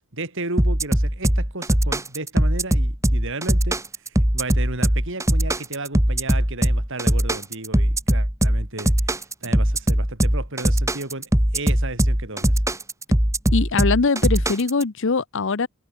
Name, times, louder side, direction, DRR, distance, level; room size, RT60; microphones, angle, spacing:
voice 1, 0.1-3.8 4.0-12.6, right 2 dB, 60° right, 5.8 m, -33 dB
sound 1, 0.6-14.8, right 1 dB, 15° right, 2.1 m, -20 dB
voice 2, 13.5-15.7, left 4 dB, 60° left, 0.8 m, -22 dB
head